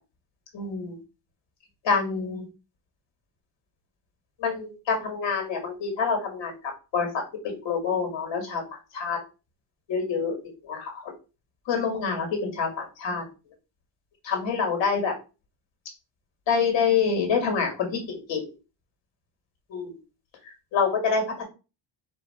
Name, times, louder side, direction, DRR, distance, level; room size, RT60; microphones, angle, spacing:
voice 1, 0.5-1.0 1.8-2.5 4.4-6.5 6.9-7.2 7.7-8.6 8.9-9.2 9.9-10.4 10.6-10.9 11.7-13.2 14.2-15.1 16.5-18.5 19.7-19.9 20.7-21.4, left 5 dB, 75° left, 3 dB, 1.9 m, -26 dB
4.4 x 2.8 x 4.2 m, 0.31 s
cardioid pair, 160°, 44 cm